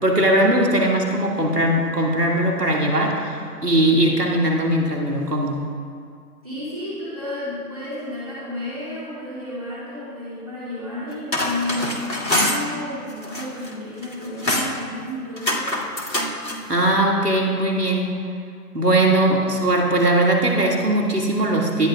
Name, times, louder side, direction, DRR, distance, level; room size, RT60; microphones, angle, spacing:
voice 1, 0.0-3.4 3.6-5.6 16.7-18.1 18.7-21.9, right 1 dB, 70° right, -1 dB, 2.2 m, -19 dB
voice 2, 6.4-15.7, left 1 dB, 20° right, -9 dB, 2.6 m, -32 dB
sound 1, 11.1-12.6 13.1-13.7 14.0-14.8 15.4-16.6, left 1 dB, 85° left, 2.3 m, -24 dB
18.5 x 11.5 x 2.4 m, 2.3 s
figure-of-eight pair, 170°, 49 cm